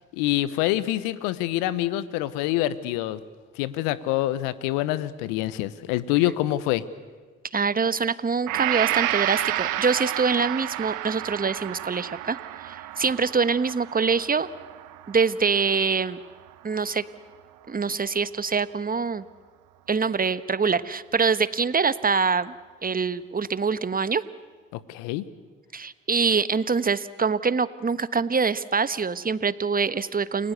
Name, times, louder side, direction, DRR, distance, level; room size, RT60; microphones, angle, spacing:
voice 1, 0.1-3.2 3.5-6.8 24.7-25.2, left 14 dB, 75° left, 17 dB, 1.1 m, -26 dB
voice 2, 7.5-12.4 12.6-14.5 15.1-16.2 16.6-17.0 17.7-19.2 19.9-22.5 22.8-24.2 25.7-30.5, right 5 dB, 25° right, 15 dB, 1.2 m, -24 dB
Gong, 8.5-16.5, right 14 dB, 70° right, 1.3 m, -31 dB
29.5 x 19.5 x 8.2 m, 1.4 s
hypercardioid pair, 45°, 33 cm